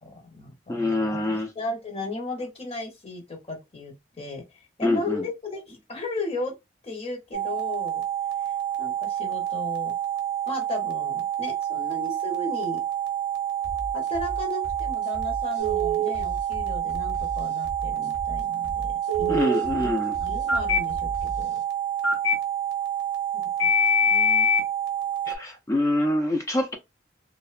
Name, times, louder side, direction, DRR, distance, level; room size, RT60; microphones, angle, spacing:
voice 1, 0.0-6.5 6.8-8.0 8.4-10.0 10.5-12.8 13.9-18.9 19.2-19.4 19.8-19.9 20.2-21.6 23.6-23.7 24.1-24.5, left 2 dB, 30° left, 0.7 m, -35 dB
voice 2, 0.7-1.5 4.8-5.2 19.3-20.2 25.3-26.7, left 1 dB, 15° left, 0.3 m, -25 dB
sound 1, 7.3-25.4, right 11 dB, 60° right, 0.6 m, -29 dB
sound 2, 13.6-21.6, equal, 60° left, 0.9 m, -37 dB
Telephone, 15.6-16.1 19.1-19.6 20.5-20.8 22.0-22.3 23.6-24.6, left 3 dB, 90° left, 0.7 m, -22 dB
2.7 x 2.1 x 2.4 m
head